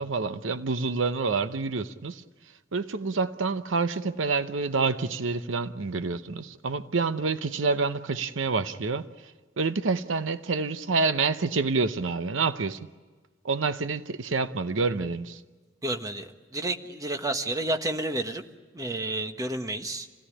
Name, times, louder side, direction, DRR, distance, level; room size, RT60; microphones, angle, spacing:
voice 1, 0.0-2.2 2.7-9.1 9.6-12.8 13.4-15.4, right 4 dB, 75° right, 0.8 m, -27 dB
voice 2, 15.8-18.4 18.7-20.1, right 2 dB, 20° right, 1.3 m, -30 dB
27.0 x 17.0 x 9.9 m
head